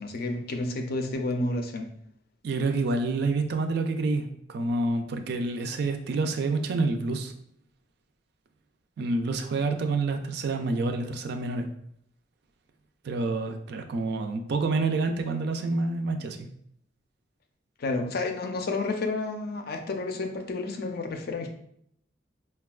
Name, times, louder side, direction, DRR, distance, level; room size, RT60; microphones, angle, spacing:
voice 1, 0.0-1.9 17.8-21.5, left 2 dB, 55° left, 5 dB, 0.4 m, -30 dB
voice 2, 2.4-7.3 9.0-11.7 13.0-16.5, right 3 dB, 60° right, 6 dB, 0.3 m, -28 dB
4.0 x 2.2 x 2.3 m, 0.69 s
head